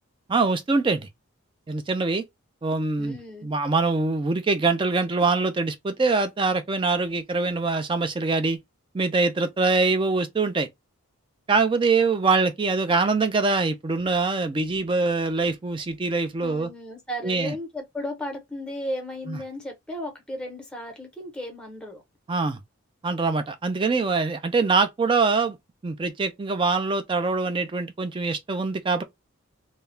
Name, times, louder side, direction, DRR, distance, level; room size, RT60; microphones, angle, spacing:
voice 1, 0.3-1.1 1.7-2.2 2.6-8.6 8.9-10.7 11.5-16.7 17.2-17.5 19.3-19.4 22.3-22.6 23.0-25.6 25.8-29.0, right 3 dB, 25° right, 0.3 m, -24 dB
voice 2, 3.0-3.5 16.4-22.0, equal, 5° left, 0.7 m, -35 dB
2.2 x 2.0 x 3.1 m
head